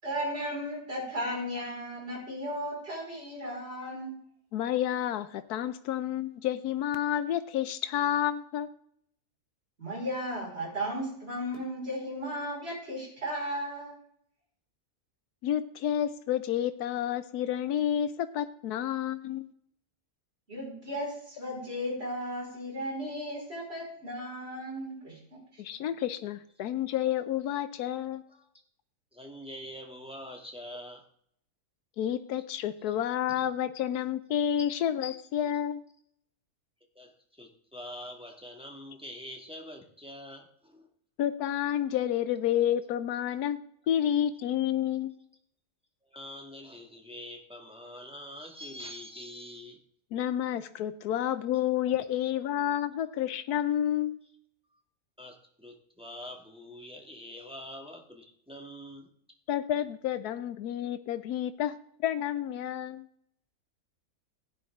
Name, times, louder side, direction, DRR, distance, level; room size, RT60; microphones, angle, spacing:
voice 1, 0.0-4.2 9.8-14.0 20.5-25.6, equal, 40° right, -2 dB, 5.2 m, -35 dB
voice 2, 4.5-8.7 15.4-19.5 25.6-28.2 32.0-35.8 41.2-43.6 43.9-45.1 50.1-54.2 59.5-61.7 62.0-63.1, left 10 dB, 90° left, 11 dB, 1.2 m, -30 dB
voice 3, 29.1-31.0 32.9-33.0 33.3-33.4 36.9-40.9 46.0-49.8 54.7-54.8 55.2-59.1, equal, 5° right, 1 dB, 1.7 m, -45 dB
15.5 x 9.9 x 3.6 m, 0.67 s
omnidirectional pair, 1.6 m